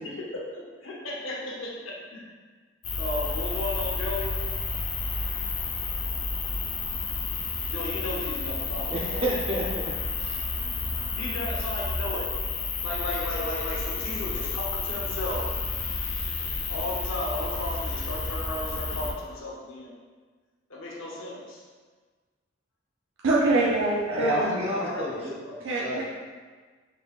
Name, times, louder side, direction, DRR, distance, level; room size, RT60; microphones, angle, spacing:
voice 1, 0.0-2.3 3.0-4.4 7.6-9.3 11.1-12.3 12.8-15.5 16.7-19.9 20.7-21.6 24.1-25.6, left 1 dB, 85° left, -4 dB, 0.8 m, -34 dB
sound 1, 2.8-19.1, left 3 dB, 35° left, 0.5 m, -31 dB
voice 2, 8.9-10.4 24.1-25.3 25.8-26.0, right 1 dB, 30° right, -4 dB, 0.7 m, -30 dB
voice 3, 23.2-24.5 25.6-26.0, right 2 dB, 80° right, -5 dB, 0.6 m, -24 dB
5.0 x 3.3 x 2.4 m, 1.4 s
head